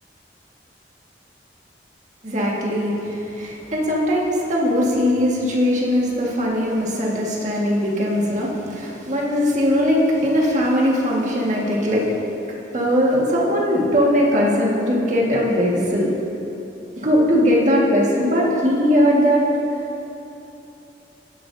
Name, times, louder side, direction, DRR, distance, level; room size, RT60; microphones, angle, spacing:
voice 1, 2.2-12.1 12.7-16.1 17.0-19.4, equal, 45° right, -4 dB, 1.8 m, -20 dB
17.0 x 10.5 x 2.8 m, 3.0 s
head